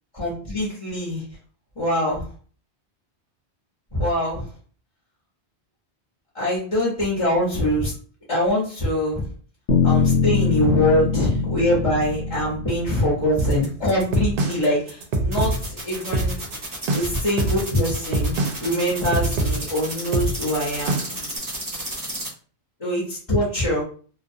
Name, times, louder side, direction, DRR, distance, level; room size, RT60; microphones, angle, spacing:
voice 1, 0.1-1.2 1.8-2.3 3.9-4.5 6.3-7.9 8.3-9.2 9.8-15.5 15.9-16.3 16.9-21.0 22.8-23.8, left 1 dB, 30° left, -6 dB, 0.9 m, -23 dB
sound 1, 9.7-13.7, left 5 dB, 70° left, 0.8 m, -23 dB
sound 2, 13.4-21.3, right 2 dB, 60° right, 0.7 m, -24 dB
sound 3, 15.3-22.3, right 1 dB, 20° right, 0.6 m, -32 dB
2.4 x 2.2 x 2.7 m, 0.42 s
omnidirectional pair, 1.1 m